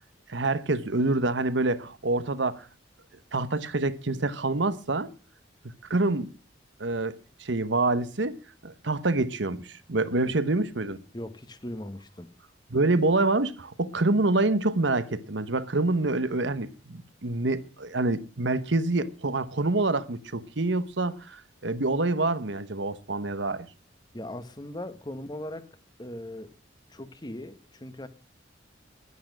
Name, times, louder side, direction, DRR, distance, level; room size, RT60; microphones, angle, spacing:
voice 1, 0.3-2.7 3.3-5.1 5.9-6.3 6.8-7.1 7.4-8.4 8.6-11.0 12.7-23.7, right 2 dB, 75° right, 1.1 m, -26 dB
voice 2, 11.1-12.3 24.1-25.7 26.0-26.5 26.9-28.1, left 1 dB, 20° left, 1.2 m, -39 dB
11.5 x 11.0 x 6.1 m
head